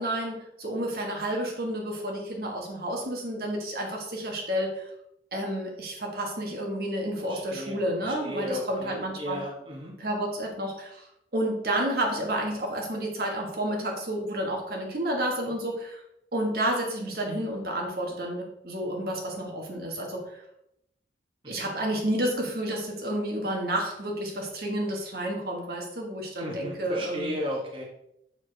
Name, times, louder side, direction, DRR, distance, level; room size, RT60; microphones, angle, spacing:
voice 1, 0.0-4.9 5.3-9.4 10.0-11.1 11.3-16.0 16.3-20.4 21.5-27.3, right 1 dB, 60° right, 0 dB, 1.4 m, -30 dB
voice 2, 7.3-9.9 21.4-21.5 26.4-27.8, equal, 30° right, -2 dB, 1.3 m, -35 dB
6.7 x 5.9 x 3.3 m, 0.79 s
head